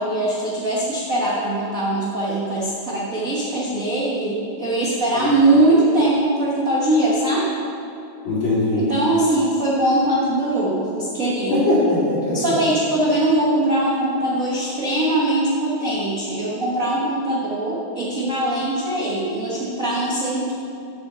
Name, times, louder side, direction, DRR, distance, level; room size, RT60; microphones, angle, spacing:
voice 1, 0.0-7.5 8.7-11.7 12.3-20.6, right 1 dB, 55° right, -6 dB, 0.9 m, -21 dB
voice 2, 8.3-8.8 11.5-12.5, left 2 dB, 40° left, -8 dB, 3.7 m, -20 dB
8.5 x 7.7 x 6.8 m, 2.7 s
omnidirectional pair, 3.6 m